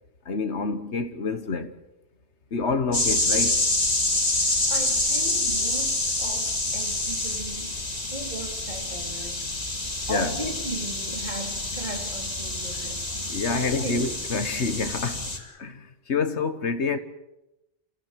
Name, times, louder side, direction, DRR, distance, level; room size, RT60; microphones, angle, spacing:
voice 1, 0.3-1.7 2.5-3.7 10.1-10.3 12.7-12.9 13.3-17.0, left 4 dB, 85° left, 1.7 m, -28 dB
sound 1, 2.9-15.4, left 2 dB, 35° left, 2.7 m, -27 dB
voice 2, 4.4-7.8 8.1-9.4 10.1-13.0 13.4-14.1, right 2 dB, 45° right, 3.3 m, -37 dB
28.0 x 15.5 x 7.6 m
omnidirectional pair, 1.1 m